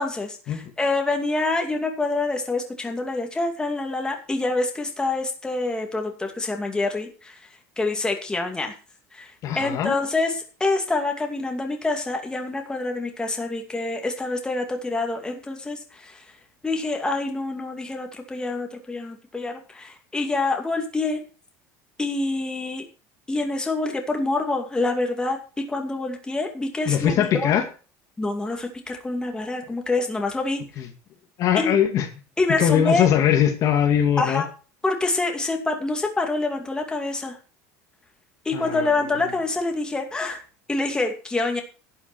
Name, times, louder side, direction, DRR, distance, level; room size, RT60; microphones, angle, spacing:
voice 1, 0.0-7.4 7.8-8.8 9.1-16.2 16.6-21.2 22.0-22.9 23.3-27.5 28.2-30.6 31.5-31.8 32.4-33.1 34.2-34.5 34.8-37.4 38.4-40.4 40.7-41.6, left 2 dB, 10° left, 3 dB, 2.4 m, -26 dB
voice 2, 9.4-10.0 26.9-27.7 30.8-30.9 31.4-32.1 32.6-34.4 38.5-38.9, left 9 dB, 50° left, 5 dB, 2.1 m, -21 dB
11.5 x 7.1 x 6.1 m, 0.35 s
supercardioid pair, 125°, 7 cm